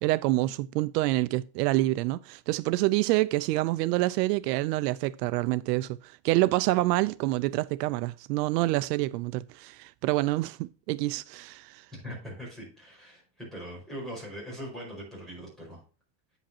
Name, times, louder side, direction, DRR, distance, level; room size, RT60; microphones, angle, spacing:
voice 1, 0.0-11.9, right 18 dB, 75° right, 0.6 m, -27 dB
voice 2, 11.9-15.8, equal, ahead, 5.0 m, -41 dB
8.7 x 8.0 x 2.8 m
cardioid pair, 175°, 48 cm